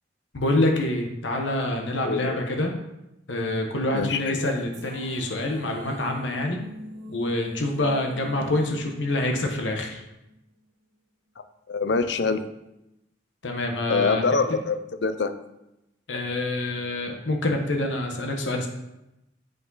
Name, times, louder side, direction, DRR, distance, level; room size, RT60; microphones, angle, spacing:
voice 1, 0.3-2.8 3.3-6.6 7.1-10.0 13.4-14.2 16.1-18.7, left 1 dB, 85° left, 3 dB, 1.1 m, -26 dB
voice 2, 2.0-2.4 3.9-4.4 11.7-12.4 13.9-15.3, left 4 dB, 65° left, 10 dB, 0.5 m, -25 dB
sound 1, 4.0-10.3, equal, 70° right, 1.3 m, -44 dB
8.1 x 5.2 x 4.0 m, 0.89 s
head